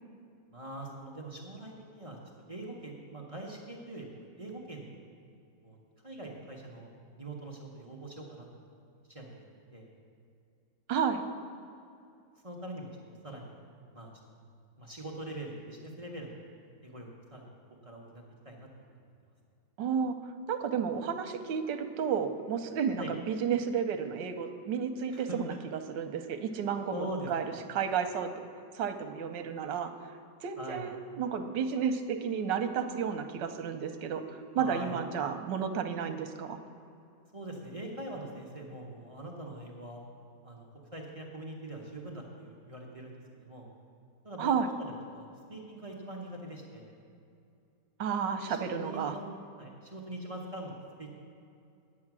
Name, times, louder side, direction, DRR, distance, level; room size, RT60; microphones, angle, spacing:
voice 1, 0.5-2.2 2.5-5.0 5.6-5.8 6.0-6.9 7.2-8.6 9.1-9.4 9.7-9.9 12.4-13.5 13.9-14.1 14.8-16.4 16.8-17.5 17.8-18.7 23.0-23.1 25.1-25.6 26.9-27.7 30.6-30.9 34.6-35.0 37.3-40.0 40.4-43.7 44.2-46.9 48.5-49.3 49.6-50.7 51.0-51.1, right 1 dB, 25° right, -2 dB, 0.9 m, -43 dB
voice 2, 10.9-11.2 19.8-20.1 20.5-25.5 26.0-28.3 28.7-29.9 30.4-34.2 34.5-36.6 44.4-44.7 48.0-49.2, right 7 dB, 85° right, 8 dB, 1.4 m, -32 dB
9.7 x 8.5 x 6.0 m, 2.6 s
omnidirectional pair, 1.9 m